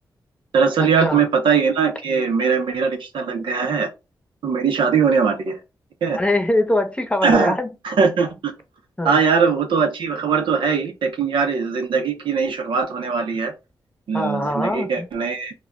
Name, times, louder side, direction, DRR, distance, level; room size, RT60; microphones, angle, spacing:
voice 1, 0.5-3.9 4.4-5.6 6.0-6.2 7.2-7.6 7.8-8.5 9.0-13.5 14.1-15.5, right 5 dB, 85° right, 0.6 m, -20 dB
voice 2, 6.1-7.7 9.0-9.2 14.1-15.1, left 1 dB, 15° left, 0.7 m, -22 dB
2.3 x 2.1 x 3.5 m
cardioid pair, 60°, 8 cm